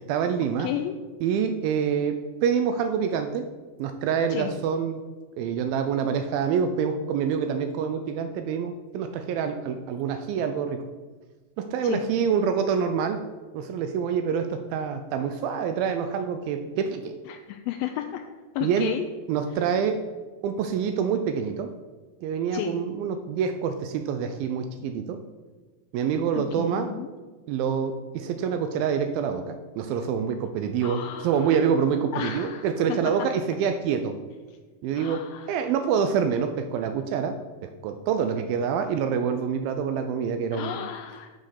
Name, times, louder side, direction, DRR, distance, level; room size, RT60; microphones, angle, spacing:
voice 1, 0.1-0.7 1.2-3.5 3.8-5.0 5.4-10.8 11.6-13.2 13.5-17.1 18.6-18.9 19.3-20.0 20.4-21.7 22.2-25.2 25.9-26.9 27.5-34.2 34.8-40.9, right 7 dB, 85° right, 8 dB, 2.4 m, -26 dB
voice 2, 0.6-1.0 4.3-4.5 11.8-12.0 17.3-18.2 18.6-19.1 22.5-22.8 26.4-27.1 30.8-31.3 32.1-33.0 35.0-35.5 40.5-41.3, left 11 dB, 90° left, 4 dB, 2.5 m, -33 dB
9.4 x 5.3 x 6.5 m, 1.3 s
omnidirectional pair, 4.2 m